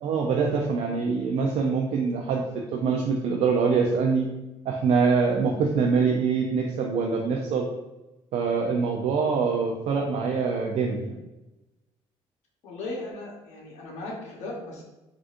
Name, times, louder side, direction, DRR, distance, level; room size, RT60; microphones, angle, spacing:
voice 1, 0.0-2.4 2.7-4.3 4.7-7.7 8.3-11.2, right 5 dB, 60° right, 1 dB, 0.4 m, -24 dB
voice 2, 12.6-14.8, left 2 dB, 65° left, -3 dB, 0.9 m, -37 dB
3.7 x 2.4 x 2.5 m, 1.0 s
supercardioid pair, 75°, 13 cm